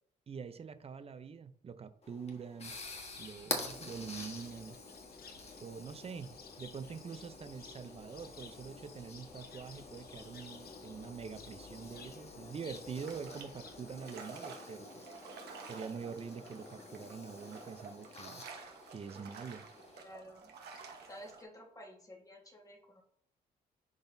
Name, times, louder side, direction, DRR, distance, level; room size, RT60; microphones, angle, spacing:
voice 1, 0.3-2.7 3.2-4.8 5.6-15.1 15.7-18.4 18.9-19.7, right 6 dB, 40° right, 12 dB, 0.6 m, -45 dB
sound 1, 2.0-20.0, left 3 dB, 40° left, 1.3 m, -48 dB
Cricket, 2.6-13.9, left 5 dB, 70° left, 0.9 m, -56 dB
sound 2, 13.0-21.4, right 5 dB, 85° right, 1.2 m, -51 dB
voice 2, 19.9-20.5 21.1-23.0, equal, 20° left, 1 dB, 1.5 m, -52 dB
10.5 x 4.0 x 2.7 m, 0.63 s
cardioid pair, 95°, 16 cm